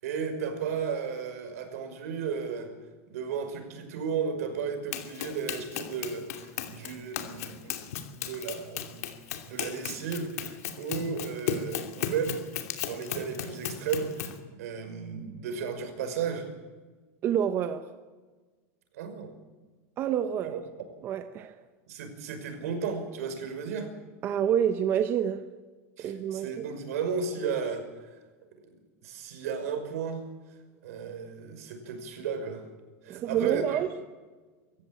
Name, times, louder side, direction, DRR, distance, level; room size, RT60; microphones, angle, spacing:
voice 1, 0.0-2.7 3.1-7.8 8.2-9.1 9.5-12.5 12.8-16.5 18.9-19.3 20.5-20.6 21.9-23.9 26.0-28.1 29.0-30.3 30.8-32.7 33.0-33.8, right 6 dB, 75° right, 5.6 m, -34 dB
Run, 4.9-14.4, left 9 dB, 80° left, 2.8 m, -36 dB
voice 2, 17.2-17.9 20.0-20.6 21.0-21.5 24.2-25.4 26.0-26.7 33.1-33.9, right 9 dB, 30° right, 1.0 m, -28 dB
24.0 x 15.5 x 8.9 m
supercardioid pair, 170°, 8 cm